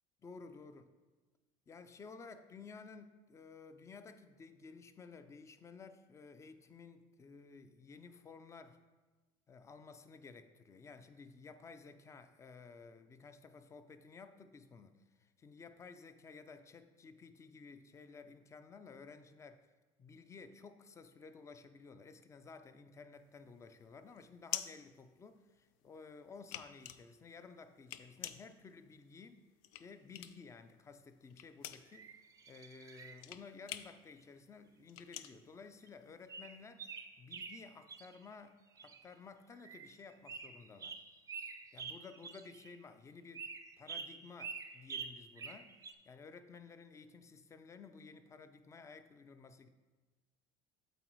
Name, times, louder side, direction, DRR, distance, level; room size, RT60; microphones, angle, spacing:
voice 1, 0.2-0.8 1.7-8.8 9.5-19.7 20.0-29.4 29.8-32.2 32.4-36.9 37.2-41.0 41.7-43.5 43.8-49.7, left 4 dB, 25° left, 10 dB, 0.5 m, -54 dB
sound 1, 23.2-25.8 26.1-30.6 30.9-36.4, left 12 dB, 85° left, 0.4 m, -46 dB
sound 2, 31.9-33.2 35.3-35.4 35.9-36.0 36.3-38.2 38.7-39.1 39.5-40.0 40.3-42.8 43.3-45.9, right 5 dB, 30° right, 0.5 m, -47 dB
8.0 x 4.0 x 4.6 m, 1.2 s
supercardioid pair, 115°, 12 cm